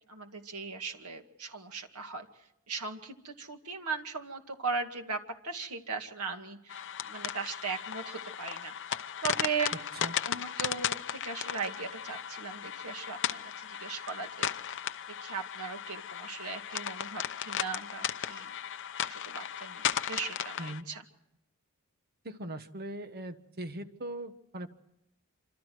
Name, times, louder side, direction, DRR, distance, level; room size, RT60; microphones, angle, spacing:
voice 1, 0.1-2.3 2.7-8.7 9.2-9.8 10.3-14.5 15.2-18.5 19.1-21.0, right 5 dB, 85° right, 5 dB, 2.2 m, -38 dB
sound 1, 6.7-20.8, left 9 dB, 55° left, 0.8 m, -36 dB
voice 2, 22.2-24.7, right 1 dB, 45° right, 9 dB, 1.4 m, -40 dB
27.5 x 26.0 x 4.7 m, 0.84 s
head